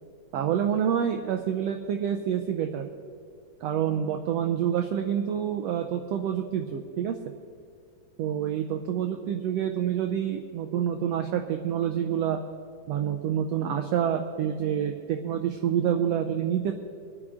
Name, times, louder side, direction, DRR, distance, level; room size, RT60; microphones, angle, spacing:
voice 1, 0.3-2.9 3.6-7.2 8.2-12.4 12.9-16.7, right 9 dB, 85° right, 5 dB, 1.4 m, -27 dB
26.5 x 9.7 x 3.7 m, 2.2 s
omnidirectional pair, 3.6 m